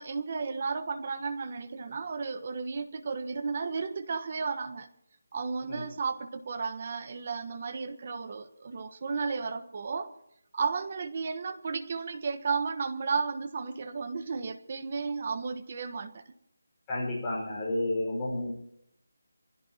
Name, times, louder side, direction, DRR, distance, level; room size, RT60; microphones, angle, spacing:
voice 1, 0.0-4.9 5.3-10.1 10.5-16.2, right 5 dB, 35° right, 10 dB, 1.3 m, -33 dB
voice 2, 16.9-18.6, left 1 dB, 10° left, -6 dB, 5.3 m, -31 dB
26.0 x 16.5 x 2.9 m, 0.74 s
figure-of-eight pair, 175°, 0 cm